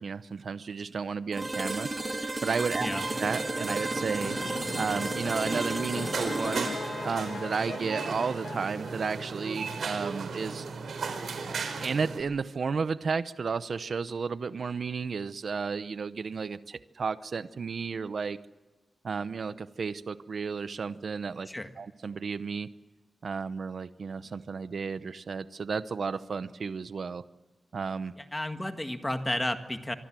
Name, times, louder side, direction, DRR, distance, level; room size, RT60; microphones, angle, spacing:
voice 1, 0.0-1.9 2.4-2.9 3.2-4.4 4.7-6.7 7.0-10.7 11.8-18.4 19.0-21.5 21.8-22.7 23.2-27.2 27.7-28.1, right 5 dB, 55° right, 13 dB, 0.8 m, -32 dB
sound 1, 1.3-9.1, right 2 dB, 20° right, 2.0 m, -34 dB
sound 2, 2.9-12.2, right 4 dB, 80° right, 4.3 m, -37 dB
sound 3, 4.2-9.7, left 5 dB, 65° left, 1.6 m, -40 dB
voice 2, 28.2-29.9, left 1 dB, 10° left, 7 dB, 1.6 m, -32 dB
25.5 x 24.0 x 7.6 m, 1.2 s
wide cardioid pair, 170°, 0 cm